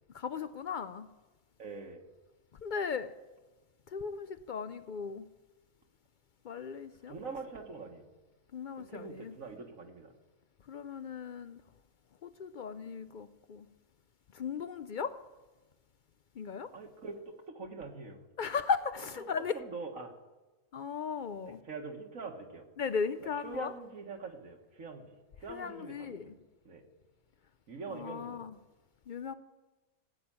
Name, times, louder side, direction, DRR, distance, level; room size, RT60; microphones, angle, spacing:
voice 1, 0.1-1.1 2.6-3.1 3.9-5.3 6.4-7.1 8.5-9.3 10.7-11.6 12.2-13.7 14.3-15.1 16.4-16.7 18.4-19.5 20.7-21.6 22.8-23.7 25.5-26.4 27.9-28.5 29.1-29.3, left 6 dB, 75° left, 12 dB, 0.4 m, -36 dB
voice 2, 1.6-2.0 7.1-8.1 8.8-10.1 16.7-18.2 19.2-20.1 21.5-22.7 23.4-25.1 25.4-26.8 27.7-28.5, right 4 dB, 65° right, 3 dB, 1.9 m, -44 dB
15.5 x 8.7 x 8.7 m, 1.2 s
omnidirectional pair, 1.5 m